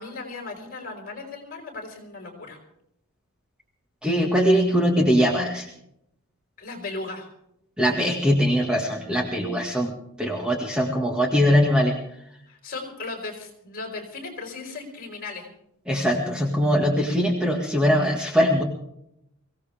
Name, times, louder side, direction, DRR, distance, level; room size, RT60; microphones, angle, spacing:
voice 1, 0.0-2.6 6.6-7.3 12.5-15.5, left 3 dB, 40° left, 2 dB, 4.7 m, -36 dB
voice 2, 4.0-5.7 7.8-9.9 10.2-11.9 15.9-18.6, equal, 5° right, 0 dB, 1.8 m, -21 dB
23.0 x 16.5 x 3.5 m, 0.76 s
head